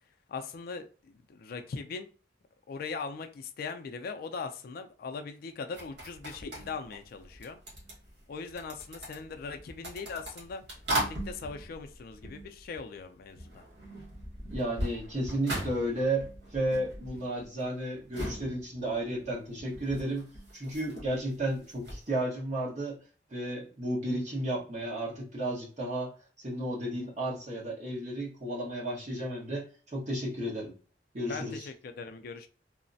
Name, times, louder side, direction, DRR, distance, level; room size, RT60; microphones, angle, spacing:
voice 1, 0.3-2.1 2.7-7.6 8.3-10.6 10.9-13.6 31.3-32.5, left 4 dB, 55° left, 0.3 m, -40 dB
sound 1, 5.7-13.0 13.3-22.1, right 1 dB, 75° right, 1.3 m, -39 dB
voice 2, 14.5-23.0 23.3-26.1 26.4-30.7 31.1-31.7, right 1 dB, 45° right, 1.2 m, -33 dB
3.1 x 2.0 x 2.6 m
head